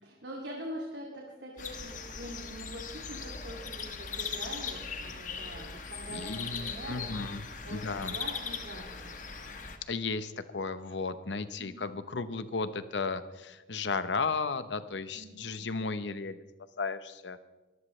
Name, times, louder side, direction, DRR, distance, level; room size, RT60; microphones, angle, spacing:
voice 1, 0.0-7.3 7.6-9.1 11.6-12.0 15.1-15.6, right 1 dB, 85° right, -2 dB, 2.5 m, -44 dB
sound 1, 1.6-9.8, left 5 dB, 45° left, 1.2 m, -39 dB
voice 2, 6.1-8.2 9.9-16.4 16.8-17.4, left 4 dB, 85° left, 12 dB, 0.9 m, -34 dB
23.0 x 14.0 x 3.2 m, 1.1 s
head